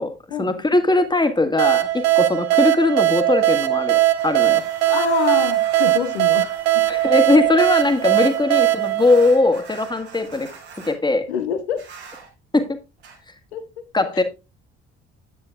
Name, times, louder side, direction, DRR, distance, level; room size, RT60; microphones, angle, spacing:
voice 1, 0.0-4.6 6.9-10.5 10.8-11.3 12.5-12.8 13.9-14.2, left 2 dB, 15° left, 1.6 m, -20 dB
sound 1, 1.6-10.0, right 16 dB, 50° right, 1.0 m, -19 dB
sound 2, 4.1-11.0 11.7-12.3 13.0-13.2, right 5 dB, 75° right, 2.7 m, -43 dB
voice 2, 4.9-6.8 11.3-11.8 13.5-13.6 14.1-14.2, left 9 dB, 75° left, 1.0 m, -26 dB
9.7 x 9.3 x 2.3 m
figure-of-eight pair, 45°, 33 cm